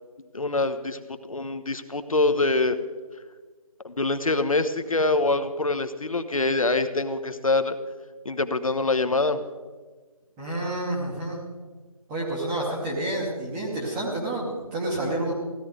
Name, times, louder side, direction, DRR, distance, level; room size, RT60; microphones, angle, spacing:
voice 1, 0.3-1.0 1.3-2.8 3.8-7.8 8.2-9.4, left 2 dB, 65° left, 9 dB, 1.2 m, -24 dB
voice 2, 10.4-11.4 12.1-15.3, right 1 dB, 5° right, -5 dB, 0.8 m, -29 dB
16.0 x 12.0 x 5.1 m, 1.3 s
figure-of-eight pair, 165°, 19 cm